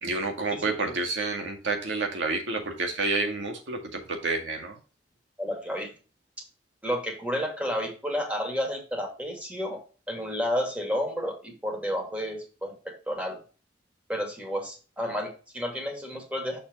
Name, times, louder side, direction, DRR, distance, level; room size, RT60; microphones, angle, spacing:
voice 1, 0.0-4.8, right 3 dB, 80° right, 2 dB, 2.0 m, -29 dB
voice 2, 5.4-5.9 6.8-9.8 10.1-12.8 13.1-13.4 14.1-16.6, equal, 10° right, 1 dB, 2.2 m, -31 dB
6.5 x 6.0 x 2.9 m, 0.36 s
head